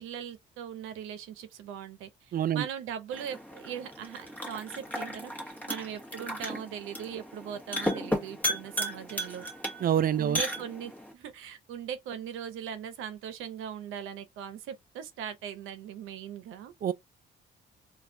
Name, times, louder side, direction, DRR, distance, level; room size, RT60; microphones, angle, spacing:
voice 1, 0.0-9.4 10.2-16.7, right 9 dB, 90° right, 0.7 m, -40 dB
voice 2, 2.3-2.6 9.8-10.4 16.8-16.9, right 10 dB, 45° right, 0.4 m, -26 dB
sound 1, 3.1-11.1, equal, 10° left, 1.3 m, -35 dB
4.1 x 2.4 x 2.6 m
cardioid pair, 90°, 20 cm